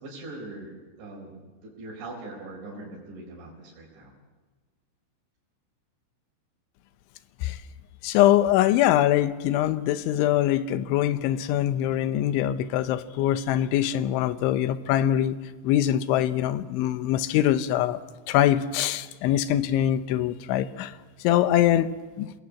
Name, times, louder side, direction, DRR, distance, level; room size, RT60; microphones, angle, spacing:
voice 1, 0.0-4.1, right 2 dB, 70° right, 6.7 m, -41 dB
voice 2, 8.0-15.4 15.6-18.0 18.3-22.3, left 12 dB, 80° left, 3.3 m, -23 dB
28.5 x 20.0 x 8.4 m
omnidirectional pair, 5.5 m